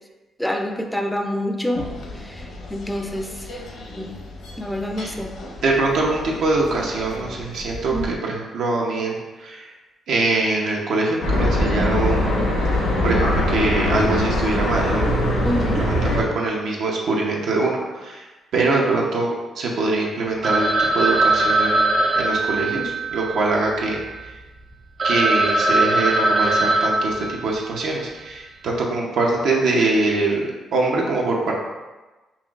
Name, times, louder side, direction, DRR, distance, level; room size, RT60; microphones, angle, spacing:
voice 1, 0.4-1.9 2.2-3.5 4.0-4.1 4.6-5.4 7.9-8.2 15.4-15.8, equal, 5° left, 4 dB, 0.4 m, -26 dB
sound 1, 1.7-8.1, left 2 dB, 70° left, 0.7 m, -36 dB
voice 2, 5.6-9.7 10.1-12.4 13.0-15.1 15.6-18.3 18.5-19.3 19.5-24.3 25.0-31.5, right 3 dB, 75° right, -2 dB, 0.7 m, -23 dB
sound 2, 11.2-16.2, left 1 dB, 90° left, 1.3 m, -21 dB
Telephone, 20.4-24.2 24.7-24.8 25.0-27.9, right 2 dB, 45° right, 0.9 m, -21 dB
5.6 x 2.5 x 2.4 m, 1.2 s
cardioid pair, 95°, 0 cm